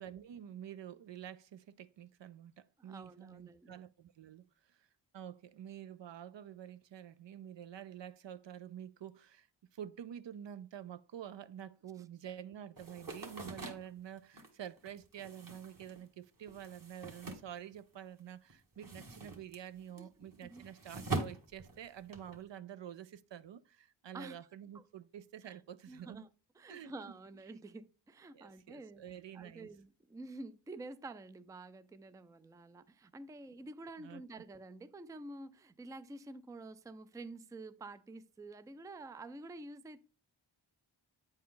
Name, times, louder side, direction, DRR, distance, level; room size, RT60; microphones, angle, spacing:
voice 1, 0.0-4.9 5.1-9.5 9.7-26.3 26.7-26.9 27.5-27.6 28.3-29.7 34.0-34.2, right 10 dB, 65° right, 0.5 m, -48 dB
voice 2, 2.8-3.8 20.0-20.6 24.1-24.4 24.7-24.8 25.4-25.6 25.9-26.3 26.6-40.0, right 2 dB, 10° right, 0.4 m, -49 dB
sound 1, 12.8-18.2 18.5-22.4, right 3 dB, 45° right, 1.6 m, -44 dB
8.3 x 4.5 x 3.8 m
cardioid pair, 45°, 48 cm